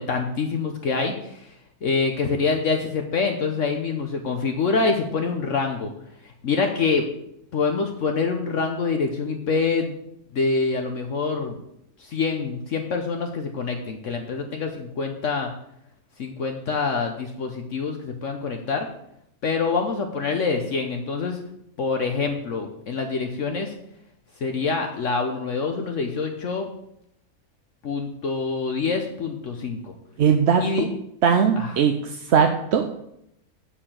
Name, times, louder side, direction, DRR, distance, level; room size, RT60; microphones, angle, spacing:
voice 1, 0.0-5.9 6.2-7.1 7.5-10.0 10.3-11.6 12.0-15.5 16.2-18.9 19.4-21.4 21.8-23.7 24.4-26.7 27.8-29.9 30.6-30.9 31.6-31.7, left 4 dB, 60° left, 3 dB, 1.1 m, -26 dB
voice 2, 30.2-30.9 31.2-32.9, right 7 dB, 55° right, 5 dB, 0.8 m, -20 dB
8.7 x 4.9 x 7.2 m, 0.77 s
omnidirectional pair, 1.5 m